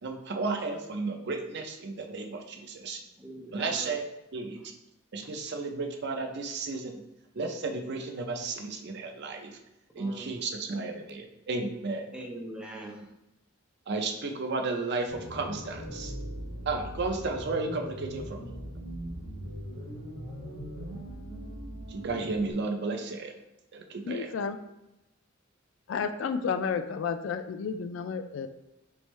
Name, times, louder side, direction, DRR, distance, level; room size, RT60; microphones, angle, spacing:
voice 1, 0.0-3.0 3.5-4.0 4.3-4.6 5.1-7.0 7.3-9.6 10.0-12.1 13.9-16.1 16.7-18.4 21.9-23.4 23.7-24.3, right 3 dB, 55° right, 4 dB, 0.5 m, -33 dB
voice 2, 3.0-3.9 5.2-5.3 10.0-10.4 12.1-13.1, right 1 dB, 5° right, -2 dB, 0.7 m, -43 dB
sound 1, 15.1-22.5, equal, 85° right, 1.2 m, -40 dB
voice 3, 24.1-24.6 25.9-28.5, left 6 dB, 65° left, 9 dB, 0.3 m, -31 dB
4.2 x 3.4 x 3.1 m, 0.90 s
head